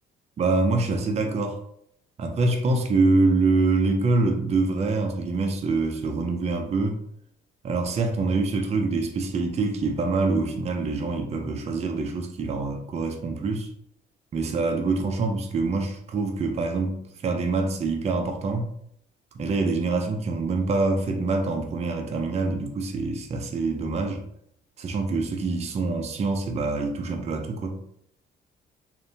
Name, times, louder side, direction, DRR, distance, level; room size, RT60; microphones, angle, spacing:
voice 1, 0.4-1.6 2.2-7.0 7.6-13.7 14.3-18.7 19.3-24.2 24.8-27.8, right 3 dB, 35° right, 4 dB, 0.4 m, -25 dB
2.6 x 2.1 x 2.6 m, 0.71 s
cardioid pair, 90°, 20 cm